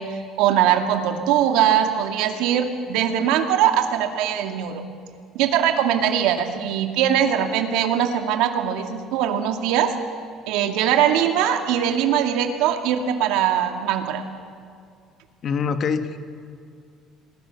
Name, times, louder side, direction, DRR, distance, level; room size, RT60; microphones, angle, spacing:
voice 1, 0.0-4.8 5.3-9.9 10.5-14.2, right 9 dB, 85° right, 5 dB, 2.2 m, -21 dB
voice 2, 15.4-16.2, left 6 dB, 40° left, 8 dB, 1.6 m, -24 dB
28.0 x 20.5 x 6.9 m, 2.3 s
cardioid pair, 150°, 0 cm